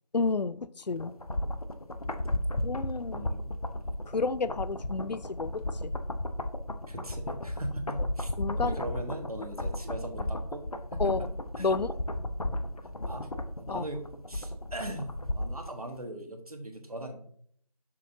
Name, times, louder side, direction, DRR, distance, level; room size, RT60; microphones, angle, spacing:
voice 1, 0.1-1.2 2.6-3.3 4.1-5.9 8.4-8.8 11.0-11.3 11.6-11.9 13.7-13.9, left 4 dB, 90° left, 0.4 m, -31 dB
sound 1, 1.0-15.7 16.0-16.1, left 1 dB, 60° left, 0.8 m, -34 dB
voice 2, 3.1-3.6 6.9-8.3 8.6-11.3 11.6-11.8 13.1-13.3 13.6-17.2, right 1 dB, 65° right, 1.4 m, -40 dB
7.3 x 6.6 x 2.7 m
figure-of-eight pair, 170°, 21 cm